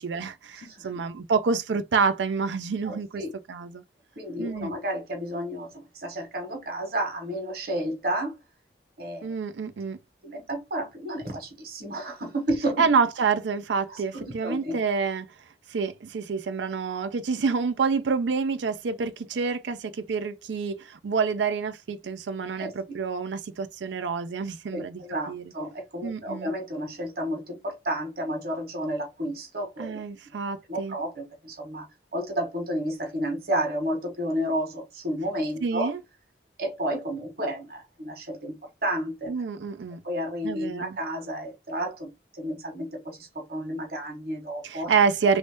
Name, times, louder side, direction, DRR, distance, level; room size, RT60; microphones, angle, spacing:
voice 1, 0.0-3.8 4.4-4.7 9.2-10.0 12.8-15.3 15.7-25.0 25.3-25.4 26.0-26.5 29.8-30.9 35.6-36.0 39.3-40.0 40.4-41.0 44.6-45.4, right 5 dB, 80° right, 0.4 m, -27 dB
voice 2, 0.6-0.9 2.8-3.3 4.2-8.3 9.0-9.3 10.2-12.9 13.9-14.8 22.6-23.0 24.7-30.4 30.7-35.9 36.6-39.3 40.0-44.9, right 1 dB, 55° right, 1.3 m, -31 dB
3.1 x 2.7 x 3.4 m
head